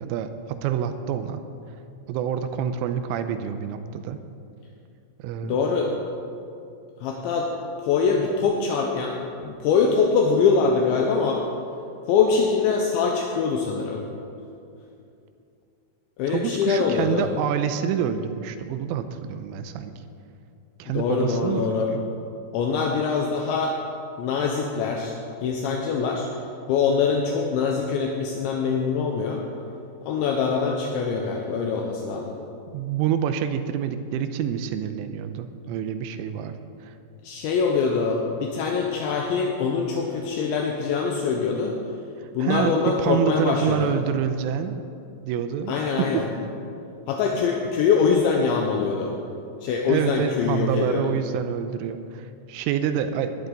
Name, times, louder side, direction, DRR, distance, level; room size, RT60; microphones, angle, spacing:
voice 1, 0.0-1.4 2.1-4.2 5.2-5.6 16.3-19.9 20.8-22.0 32.7-36.5 36.8-36.9 42.2-44.8 45.2-46.2 49.9-53.5, right 8 dB, 85° right, 9 dB, 3.0 m, -27 dB
voice 2, 5.4-5.9 7.0-7.5 7.8-9.1 9.4-11.4 12.1-14.0 16.2-17.3 20.9-21.9 22.5-23.7 24.2-26.3 26.7-29.4 30.1-32.4 37.2-41.7 42.3-43.9 45.7-46.3 47.1-49.1 49.6-51.2, left 5 dB, 80° left, 1 dB, 2.9 m, -23 dB
19.5 x 11.0 x 4.0 m, 2.6 s
omnidirectional pair, 5.9 m